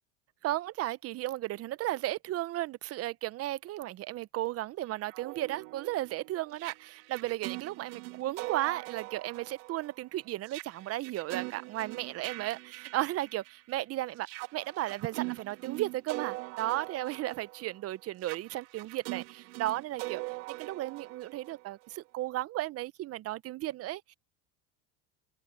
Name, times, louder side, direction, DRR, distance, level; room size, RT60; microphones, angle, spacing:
voice 1, 0.4-20.2 20.6-24.1, right 15 dB, 40° right, 0.7 m, -35 dB
sound 1, 4.9-13.7 14.2-22.0, right 25 dB, 80° right, 1.7 m, -42 dB
open air
supercardioid pair, 115°, 37 cm